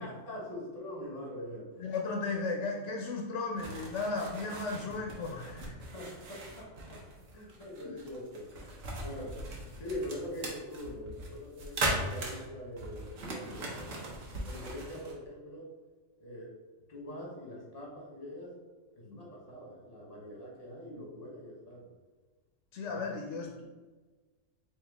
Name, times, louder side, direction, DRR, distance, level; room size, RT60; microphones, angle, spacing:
voice 1, 0.0-1.7 5.6-7.0 7.3-8.7 9.0-9.5 9.8-14.1 14.4-15.7 16.2-16.6 16.9-18.6 19.0-21.9 22.9-23.1, left 1 dB, 30° left, -2 dB, 1.0 m, -43 dB
voice 2, 1.8-5.9 14.8-14.9 19.0-19.2 22.7-23.6, left 3 dB, 65° left, 0 dB, 0.8 m, -35 dB
sound 1, 3.6-15.1, right 2 dB, 75° right, 1.2 m, -39 dB
3.8 x 2.8 x 3.4 m, 1.3 s
omnidirectional pair, 1.4 m